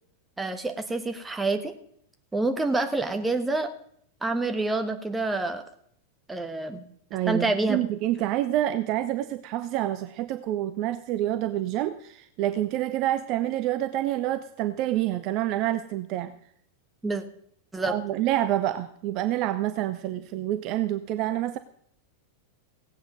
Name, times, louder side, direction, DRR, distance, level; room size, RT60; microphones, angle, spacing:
voice 1, 0.4-1.7 2.3-3.7 4.2-5.6 6.3-6.8 7.3-7.8 17.0-17.2 17.7-17.9, right 2 dB, 10° right, 6 dB, 1.4 m, -27 dB
voice 2, 7.1-16.4 17.8-21.6, right 13 dB, 40° right, 11 dB, 0.6 m, -27 dB
16.5 x 8.7 x 5.3 m, 0.66 s
figure-of-eight pair, 90°, 0 cm